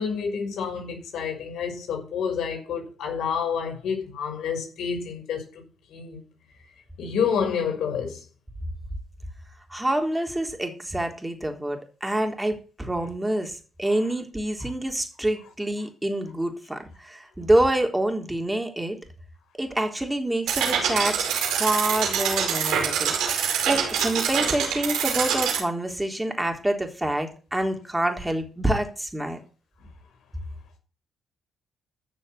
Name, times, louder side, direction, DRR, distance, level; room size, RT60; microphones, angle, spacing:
voice 1, 0.0-5.5 5.9-6.2 7.0-8.2, left 6 dB, 75° left, 6.0 m, -28 dB
voice 2, 9.7-19.0 19.6-23.1 23.7-29.4, right 1 dB, 10° right, 3.7 m, -27 dB
sound 1, 20.5-25.6, right 7 dB, 90° right, 4.8 m, -25 dB
13.0 x 6.8 x 8.2 m
cardioid pair, 90°, 0 cm